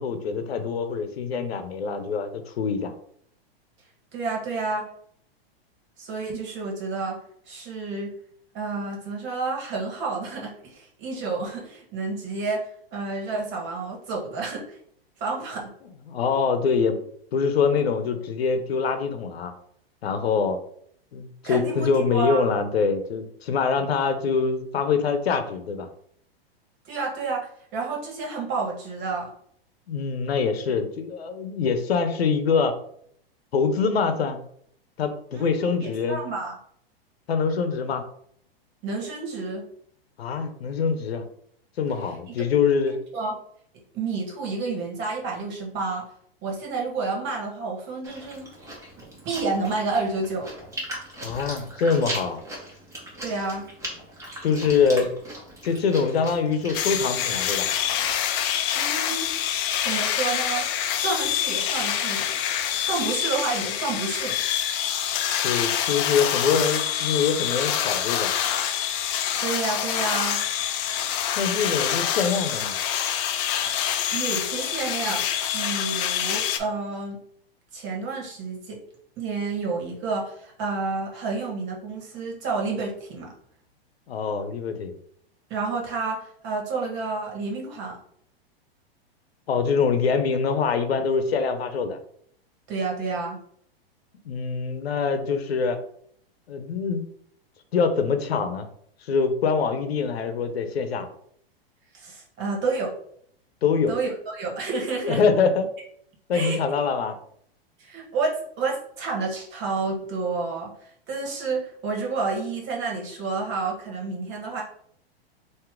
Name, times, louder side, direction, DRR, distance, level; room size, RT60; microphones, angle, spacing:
voice 1, 0.0-2.9 16.1-17.0 17.3-19.5 20.0-20.6 21.1-25.9 29.9-32.8 33.5-34.4 35.0-36.2 37.3-38.0 40.2-41.2 41.8-43.0 51.2-52.4 54.4-55.1 55.6-57.7 65.4-68.3 71.4-72.8 84.1-84.9 89.5-92.0 94.2-95.8 96.5-97.0 97.7-98.7 99.0-101.1 103.6-104.0 105.1-105.7 106.3-107.2, left 5 dB, 85° left, 8 dB, 0.8 m, -24 dB
voice 2, 4.1-4.8 6.0-7.2 7.5-8.1 8.5-12.6 12.9-14.8 15.2-15.7 20.3-20.4 21.4-22.4 26.9-29.3 35.3-36.6 38.8-39.6 43.1-43.3 43.9-46.0 46.4-48.5 49.2-50.5 53.2-53.6 58.7-59.3 59.8-60.6 60.9-64.4 69.4-70.4 73.6-75.2 75.5-77.2 77.7-78.8 79.2-83.3 85.5-88.0 92.7-93.4 101.9-102.9 103.9-105.2 106.3-106.6 107.8-110.7 111.1-114.6, right 4 dB, 35° right, -1 dB, 1.6 m, -30 dB
Chewing mastication, 48.0-58.1, right 1 dB, 10° right, 1.5 m, -39 dB
sound 1, 56.7-76.6, left 10 dB, 35° left, 0.6 m, -26 dB
4.5 x 2.8 x 3.7 m, 0.65 s
hypercardioid pair, 125°, 30 cm